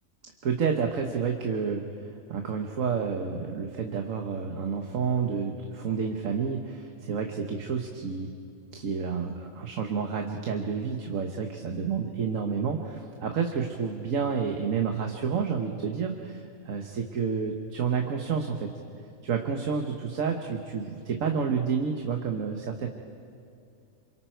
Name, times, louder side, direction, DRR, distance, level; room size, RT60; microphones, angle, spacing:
voice 1, 0.4-1.8 2.3-8.3 8.7-18.7 19.2-22.9, right 6 dB, 70° right, 4 dB, 1.5 m, -29 dB
27.5 x 25.5 x 4.6 m, 2.6 s
omnidirectional pair, 1.4 m